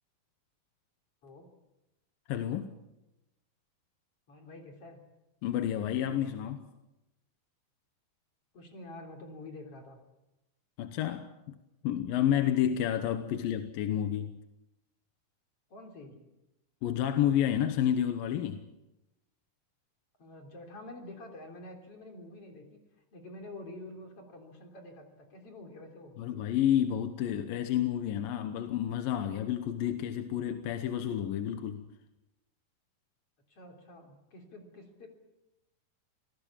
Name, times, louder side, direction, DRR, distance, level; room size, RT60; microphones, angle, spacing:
voice 1, 2.3-2.7 5.4-6.6 10.8-11.6 11.8-14.4 16.8-18.6 26.2-31.9, left 10 dB, 70° left, 2.6 m, -30 dB
voice 2, 4.3-5.0 8.5-10.0 13.3-13.4 15.7-16.2 20.2-22.8 23.1-26.2 33.5-35.1, left 2 dB, 40° left, 4.0 m, -48 dB
26.0 x 19.0 x 7.3 m
omnidirectional pair, 4.5 m